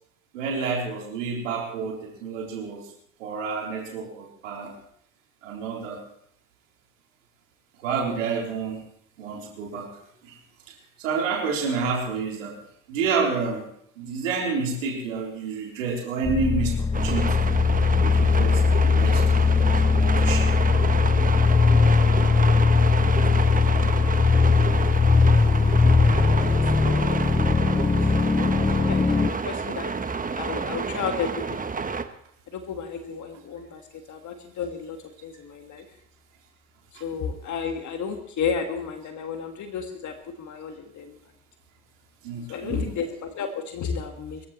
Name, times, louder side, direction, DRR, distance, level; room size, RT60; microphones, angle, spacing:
voice 1, 0.3-2.8 3.2-4.7 5.4-6.0 7.8-8.8 9.2-9.9 10.3-10.4 11.0-12.5 12.9-13.6 14.0-17.5 18.0-20.5 42.2-42.9, right 5 dB, 80° right, -2 dB, 3.8 m, -29 dB
sound 1, 16.2-29.3, left 4 dB, 10° left, 0.6 m, -20 dB
sound 2, 16.9-32.0, right 5 dB, 20° right, 1.3 m, -30 dB
voice 2, 22.0-23.2 23.7-23.8 26.1-26.5 26.8-27.6 27.9-28.0 28.7-29.9 30.3-31.6 32.5-33.8 34.1-35.0 35.2-35.9 37.0-41.1 42.5-44.4, left 6 dB, 50° left, 5 dB, 1.9 m, -33 dB
24.0 x 14.5 x 3.2 m, 0.70 s
hypercardioid pair, 60°, 38 cm